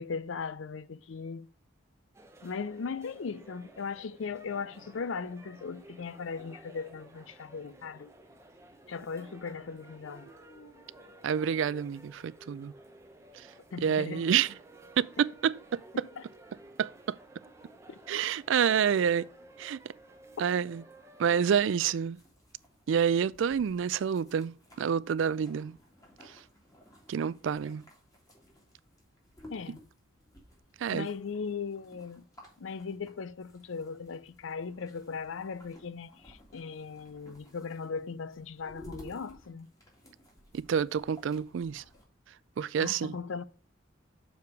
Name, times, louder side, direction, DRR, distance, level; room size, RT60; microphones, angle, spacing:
voice 1, 0.0-1.5 2.4-8.1 8.9-10.3 13.7-14.2 16.2-16.3 17.9-18.3 29.5-29.8 30.9-32.2 32.6-39.7 42.8-43.4, left 5 dB, 70° left, 0.5 m, -38 dB
sound 1, 2.1-21.6, right 1 dB, 15° right, 0.8 m, -54 dB
Dog, 9.8-11.7 12.4-13.2 15.4-16.3, equal, 45° left, 1.4 m, -60 dB
voice 2, 11.2-12.7 13.3-13.5 13.8-14.5 15.0-16.0 16.8-17.2 18.1-19.3 19.6-19.8 20.4-20.8 21.2-22.2 22.9-25.8 26.3-26.4 27.1-27.8 30.8-31.1 40.5-41.8 42.6-43.1, right 7 dB, 65° right, 0.3 m, -28 dB
sound 2, 22.1-42.0, equal, 15° left, 2.1 m, -56 dB
6.7 x 4.7 x 4.7 m
head